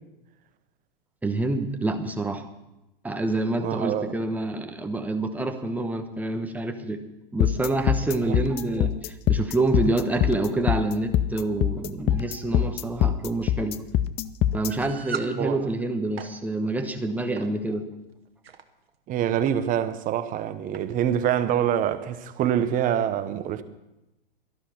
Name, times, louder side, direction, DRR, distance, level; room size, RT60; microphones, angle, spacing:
voice 1, 1.2-2.5 3.0-7.0 7.3-13.8 14.5-17.9, right 2 dB, 5° right, 1.1 m, -27 dB
voice 2, 3.6-4.1 8.2-8.4 15.4-15.7 19.1-23.6, right 10 dB, 30° right, 0.9 m, -25 dB
sound 1, 7.4-14.7, left 11 dB, 20° left, 0.4 m, -23 dB
sound 2, 14.7-15.3 16.0-16.3 17.4-17.6 18.2-18.6 19.5-19.6 19.9-20.0 20.7-20.9, right 7 dB, 90° right, 1.1 m, -37 dB
12.5 x 11.5 x 5.9 m
hypercardioid pair, 115°, 29 cm